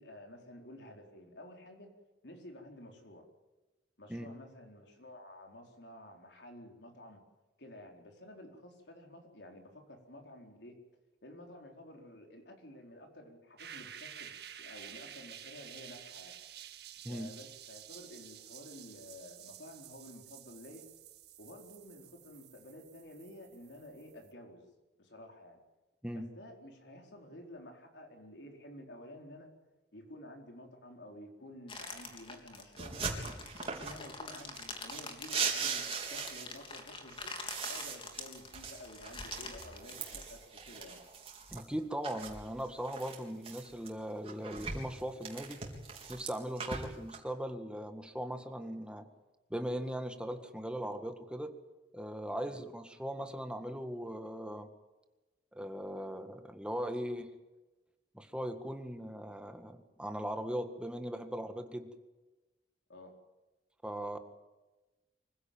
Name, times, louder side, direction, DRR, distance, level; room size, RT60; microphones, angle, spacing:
voice 1, 0.0-1.9 2.2-3.2 4.0-7.2 7.6-10.8 11.2-16.4 17.1-20.9 21.4-24.7 25.0-25.6 26.1-29.5 29.9-33.2 33.6-37.4 37.7-41.0 52.4-52.6 62.9-63.1, left 1 dB, 85° left, 2 dB, 4.5 m, -52 dB
sound 1, 13.6-24.3, right 10 dB, 65° right, 1.8 m, -51 dB
sound 2, 31.7-40.9, left 3 dB, 30° left, 3.3 m, -46 dB
sound 3, 32.8-34.0 34.4-36.8 37.1-41.6 42.0-43.9 44.2-47.2, right 5 dB, 35° right, 4.1 m, -40 dB
voice 2, 41.5-45.6 46.1-49.1 49.5-51.5 51.9-54.7 55.5-57.3 58.1-61.9 63.8-64.2, equal, 5° right, 7 dB, 1.8 m, -39 dB
25.0 x 16.0 x 9.1 m, 1.1 s
head